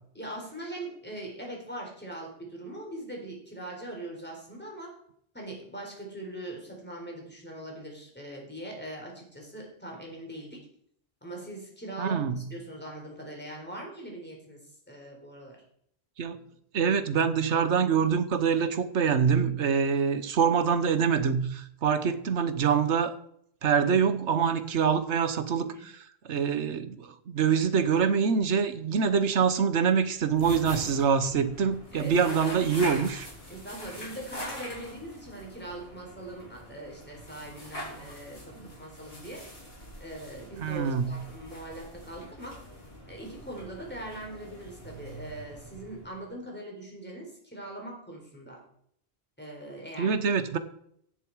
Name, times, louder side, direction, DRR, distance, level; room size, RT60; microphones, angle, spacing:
voice 1, 0.1-5.0 5.3-10.7 11.2-15.6 25.6-25.8 31.9-32.6 33.5-39.5 40.0-42.6 43.1-48.6 49.4-50.2, right 1 dB, 10° left, 0 dB, 3.9 m, -41 dB
voice 2, 12.0-12.4 16.2-16.4 16.7-23.2 23.6-25.7 26.2-33.3 38.6-38.7 40.6-41.2 50.0-50.6, right 6 dB, 85° right, 12 dB, 1.3 m, -25 dB
sound 1, 30.2-46.3, equal, 65° left, 4.1 m, -44 dB
16.0 x 7.4 x 4.7 m, 0.69 s
omnidirectional pair, 1.1 m